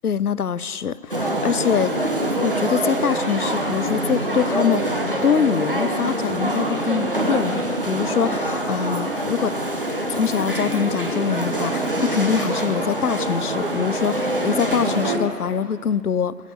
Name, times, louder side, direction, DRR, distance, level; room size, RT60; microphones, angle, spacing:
voice 1, 0.0-1.9 2.4-9.5 10.1-16.4, left 7 dB, 70° left, 18 dB, 0.6 m, -24 dB
sound 1, 1.1-15.2, right 1 dB, 35° right, 1.2 m, -24 dB
22.0 x 7.5 x 8.0 m, 2.3 s
figure-of-eight pair, 165°, 47 cm